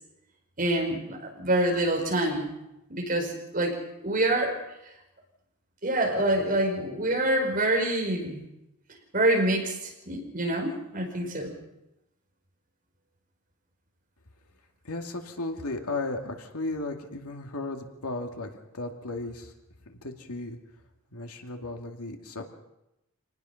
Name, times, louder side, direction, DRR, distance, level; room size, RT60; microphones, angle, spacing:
voice 1, 0.6-2.5 2.9-3.7 4.0-4.5 5.8-8.4 9.1-11.5, right 1 dB, 40° right, 0 dB, 5.1 m, -26 dB
voice 2, 14.8-19.5 19.9-20.6 21.1-22.4, left 2 dB, 90° left, 3 dB, 2.4 m, -35 dB
26.0 x 19.5 x 5.9 m, 0.91 s
head